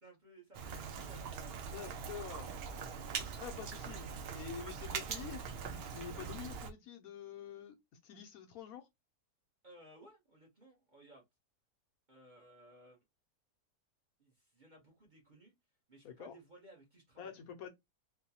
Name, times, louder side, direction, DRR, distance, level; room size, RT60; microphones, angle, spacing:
voice 1, 0.0-2.4 2.7-3.4 9.6-11.2 12.1-13.0 14.2-15.5 15.9-17.4, right 1 dB, 35° right, 0.9 m, -60 dB
Rain, 0.5-6.7, right 6 dB, 90° right, 0.5 m, -42 dB
voice 2, 1.7-2.5 3.4-7.8 8.0-8.9 16.0-16.4 17.2-17.7, left 8 dB, 75° left, 1.1 m, -47 dB
3.8 x 2.2 x 2.8 m
omnidirectional pair, 1.6 m